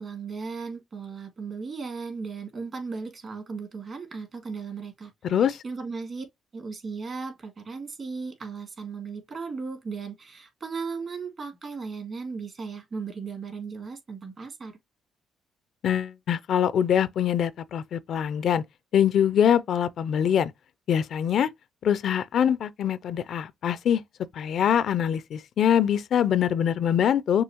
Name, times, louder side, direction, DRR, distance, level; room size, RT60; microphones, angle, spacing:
voice 1, 0.0-6.2 6.5-14.7, right 5 dB, 50° right, 2.3 m, -36 dB
voice 2, 5.2-5.6 15.8-18.6 18.9-20.5 20.9-21.5 21.8-24.0 24.3-27.4, left 9 dB, 65° left, 0.4 m, -23 dB
6.2 x 2.7 x 2.9 m
supercardioid pair, 65°, 0 cm